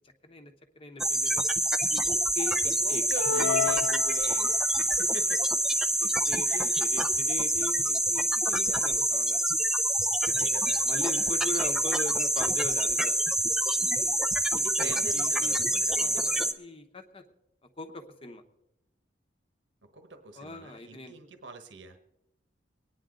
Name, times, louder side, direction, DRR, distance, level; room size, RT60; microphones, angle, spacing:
voice 1, 0.2-1.4 1.8-3.0 3.3-3.9 4.9-5.0 6.0-9.5 10.3-13.2 13.8-14.2 14.8-17.2 17.8-18.4 20.3-21.1, left 2 dB, 30° left, 6 dB, 1.0 m, -41 dB
sound 1, 1.0-16.5, right 1 dB, ahead, 0.5 m, -26 dB
voice 2, 2.6-5.4 5.7-5.8 6.4-6.9 10.2-11.6 14.5-16.5 19.9-22.0, right 3 dB, 70° right, 7 dB, 1.2 m, -44 dB
sound 2, 3.2-4.8, left 7 dB, 70° left, 0.6 m, -31 dB
24.0 x 9.8 x 3.8 m, 0.90 s
head